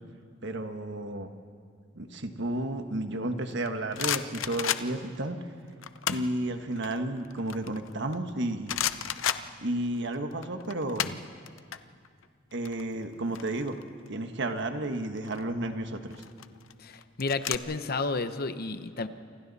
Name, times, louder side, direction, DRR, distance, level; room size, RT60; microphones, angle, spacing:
voice 1, 0.4-1.3 1.9-5.4 6.1-8.8 9.6-11.1 12.5-13.7 14.1-16.1, right 1 dB, 65° right, 7 dB, 1.4 m, -32 dB
sound 1, 3.5-5.2 5.8-6.4 6.8-8.3 8.7-10.1 10.3-11.8 12.0-12.2 12.5-14.1 15.0-15.4 16.1-17.6, left 10 dB, 85° left, 0.7 m, -32 dB
voice 2, 16.8-19.1, left 3 dB, 50° left, 11 dB, 0.9 m, -31 dB
28.5 x 26.0 x 4.2 m, 2.1 s
head